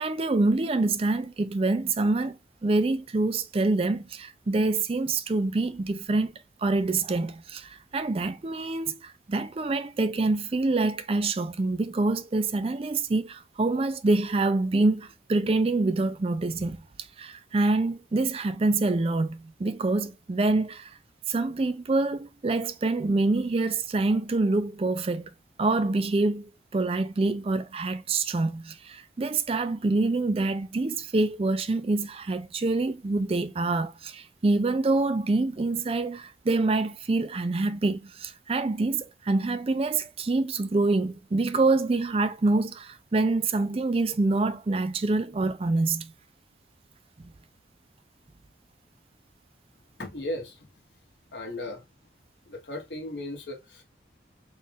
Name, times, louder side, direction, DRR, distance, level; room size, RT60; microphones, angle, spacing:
voice 1, 0.0-2.3 2.6-6.3 6.6-16.8 17.2-20.9 21.3-25.3 25.6-46.1, right 3 dB, 30° right, 0.4 m, -26 dB
voice 2, 49.9-50.7 51.3-51.8 52.4-53.8, left 1 dB, 65° left, 1.3 m, -36 dB
4.1 x 2.4 x 3.4 m
head